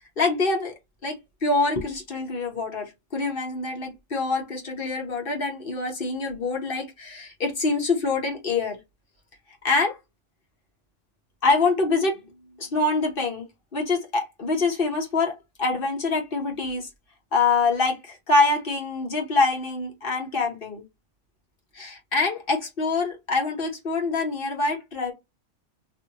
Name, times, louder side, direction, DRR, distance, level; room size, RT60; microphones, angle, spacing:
voice 1, 0.2-0.7 1.0-1.1 1.4-8.8 9.6-10.0 11.4-12.3 12.6-13.5 13.7-15.3 15.6-16.9 17.3-20.8 21.7-25.1, left 3 dB, 50° left, 1.2 m, -25 dB
2.8 x 2.7 x 2.8 m
omnidirectional pair, 1.2 m